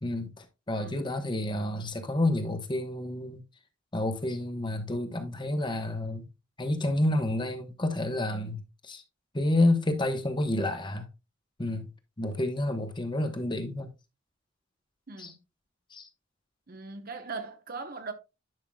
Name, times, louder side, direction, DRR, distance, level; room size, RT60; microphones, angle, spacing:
voice 1, 0.0-3.4 3.9-6.3 6.6-9.0 9.3-11.1 11.6-11.9 12.2-13.9 15.2-15.3 15.9-16.1, left 1 dB, 25° left, 1.1 m, -29 dB
voice 2, 0.7-1.0 15.1-15.3 16.7-18.1, right 4 dB, 45° right, 1.0 m, -39 dB
10.5 x 5.8 x 2.3 m
head